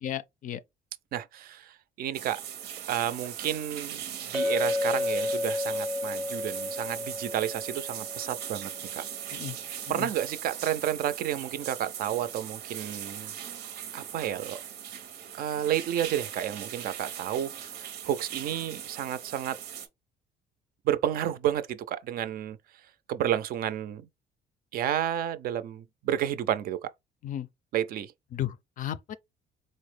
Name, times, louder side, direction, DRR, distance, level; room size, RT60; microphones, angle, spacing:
voice 1, 0.0-0.6 9.3-9.6 9.9-10.1 27.2-27.5 28.3-29.2, left 11 dB, 50° left, 0.4 m, -34 dB
voice 2, 1.1-2.4 2.9-9.0 9.9-13.3 13.9-14.6 15.3-17.5 18.0-19.6 20.8-22.6 23.1-24.1 24.7-26.9 27.7-28.1, right 11 dB, 60° right, 0.4 m, -31 dB
sound 1, 2.1-19.9, right 9 dB, 90° right, 0.7 m, -39 dB
Chink clink, 4.3-8.8, left 2 dB, 5° right, 0.6 m, -31 dB
3.9 x 2.0 x 3.2 m
cardioid pair, 110°, 17 cm